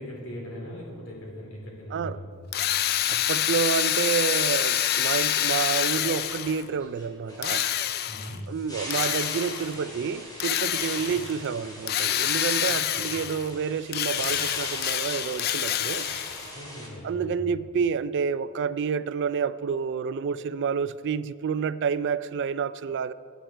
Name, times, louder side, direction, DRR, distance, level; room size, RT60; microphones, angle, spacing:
voice 1, 0.0-2.4 8.1-8.5 11.1-11.2 12.7-12.8 13.1-13.2 16.5-17.4, equal, 65° left, 3.6 m, -40 dB
Drill, 2.5-6.7 7.4-8.4 8.9-9.8 10.4-11.3 11.9-13.5 13.9-16.5, left 11 dB, 45° left, 0.4 m, -27 dB
voice 2, 3.1-7.7 8.5-16.1 17.0-23.1, right 6 dB, 55° right, 0.3 m, -29 dB
sound 1, 6.0-16.9, equal, 20° left, 2.4 m, -41 dB
16.5 x 9.2 x 4.5 m
head